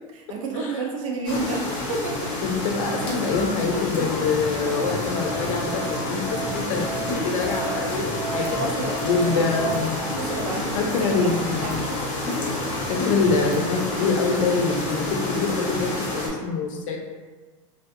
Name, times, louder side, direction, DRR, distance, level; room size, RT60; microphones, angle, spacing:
voice 1, 0.1-2.3 8.4-11.9, right 3 dB, 75° right, -1 dB, 0.6 m, -31 dB
sound 1, 1.2-16.3, left 2 dB, 40° left, 0.7 m, -29 dB
voice 2, 2.4-6.3 6.5-6.8 7.2-8.5 9.0-10.0 10.7-11.7 12.9-17.0, left 4 dB, 75° left, 2 dB, 0.6 m, -25 dB
sound 2, 2.8-13.5, left 1 dB, 10° left, 0.9 m, -38 dB
Musical instrument, 4.1-9.8, right 5 dB, 10° right, 0.5 m, -35 dB
2.6 x 2.3 x 2.5 m, 1.3 s
supercardioid pair, 150°, 17 cm